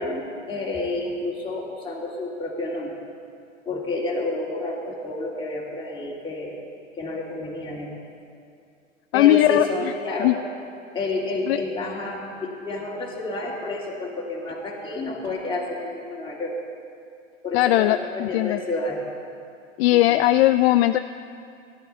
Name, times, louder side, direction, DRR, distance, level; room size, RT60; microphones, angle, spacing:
voice 1, 0.0-3.0 3.7-6.6 6.9-7.9 9.1-10.4 10.9-16.5 17.4-19.0 19.9-20.2, left 2 dB, 15° left, -4 dB, 2.6 m, -30 dB
voice 2, 9.1-9.9 10.2-10.3 11.5-11.6 17.5-18.6 19.8-21.0, left 15 dB, 55° left, 10 dB, 0.5 m, -18 dB
16.5 x 11.5 x 5.5 m, 2.4 s
hypercardioid pair, 100°, 37 cm